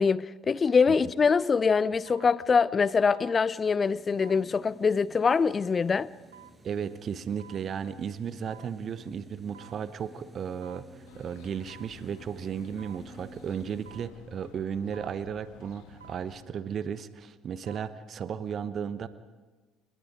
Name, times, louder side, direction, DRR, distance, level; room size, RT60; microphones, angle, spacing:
voice 1, 0.0-6.1, left 5 dB, 30° left, 0.7 m, -24 dB
sound 1, 0.9-1.1 2.1-2.3 3.1-3.4 4.2-4.5 5.2-5.5 6.3-6.6 7.4-7.6 8.5-8.7 9.5-9.8 10.6-10.9 11.7-12.0 12.8-13.0 13.9-14.1 14.9-15.2 16.0-16.3 17.4-17.9 18.3-18.4, right 10 dB, 80° right, 1.2 m, -51 dB
sound 2, 3.8-14.1, right 2 dB, 15° right, 7.0 m, -54 dB
voice 2, 6.6-19.1, right 7 dB, 40° right, 1.0 m, -35 dB
sound 3, 11.1-16.5, left 8 dB, 60° left, 1.8 m, -53 dB
30.0 x 26.0 x 5.0 m
figure-of-eight pair, 55°, 0 cm